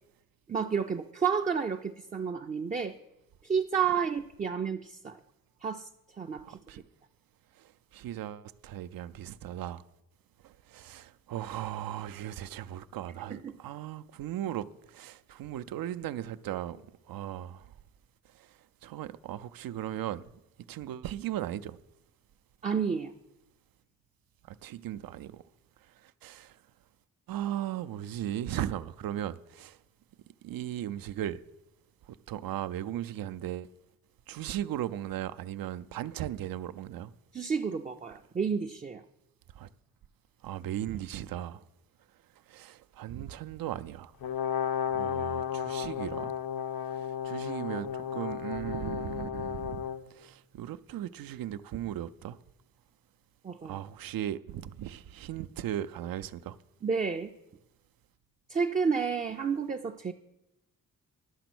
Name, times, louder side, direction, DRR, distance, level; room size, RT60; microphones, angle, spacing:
voice 1, 0.5-2.9 3.4-5.2 5.6-5.9 6.2-6.4 6.7-6.8 13.3-13.5 22.6-23.1 37.3-39.0 53.4-53.8 56.8-57.3 58.5-60.1, right 6 dB, 25° right, 0.4 m, -30 dB
voice 2, 6.4-6.8 7.6-9.8 10.4-17.6 18.8-20.2 20.7-21.8 24.5-25.4 26.2-26.5 27.3-29.8 30.4-31.4 32.3-33.7 34.3-37.1 39.6-39.7 40.4-41.6 42.5-44.1 44.9-46.4 46.9-49.8 50.2-52.4 53.6-56.6, right 12 dB, 80° right, 0.5 m, -37 dB
Brass instrument, 44.2-50.0, left 8 dB, 80° left, 0.6 m, -33 dB
11.0 x 6.8 x 6.0 m
wide cardioid pair, 120°, 34 cm